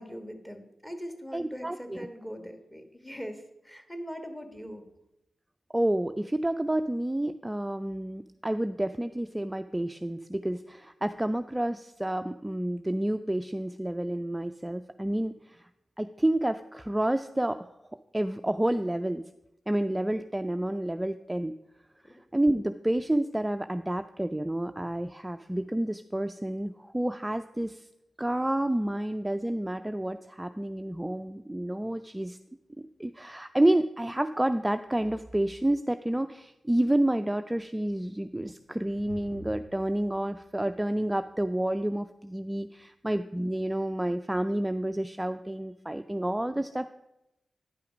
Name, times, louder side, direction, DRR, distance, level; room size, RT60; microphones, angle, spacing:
voice 1, 0.0-4.8 22.0-22.2, equal, 15° left, 6 dB, 1.5 m, -41 dB
voice 2, 1.3-2.1 5.7-15.6 16.0-17.7 18.1-19.2 19.7-21.5 22.3-27.9 28.2-32.4 33.0-46.9, right 1 dB, 15° right, 9 dB, 0.3 m, -29 dB
sound 1, 38.3-41.6, left 1 dB, 75° left, 3.1 m, -50 dB
10.0 x 5.8 x 5.0 m, 0.90 s
cardioid pair, 45°, 0 cm